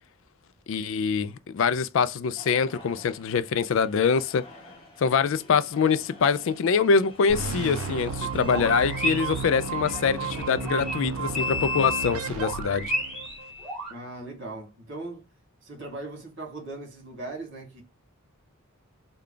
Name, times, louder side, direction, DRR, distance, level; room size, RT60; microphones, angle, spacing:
voice 1, 0.7-4.4 5.0-12.9, left 5 dB, 60° left, 0.3 m, -24 dB
sound 1, 2.4-12.2, left 1 dB, 25° left, 0.8 m, -49 dB
sound 2, 7.3-13.4, right 5 dB, 85° right, 0.5 m, -33 dB
sound 3, 8.3-13.9, left 2 dB, 5° right, 1.3 m, -33 dB
voice 2, 13.9-15.2 15.6-17.8, right 2 dB, 55° right, 1.7 m, -39 dB
3.3 x 2.3 x 3.7 m
head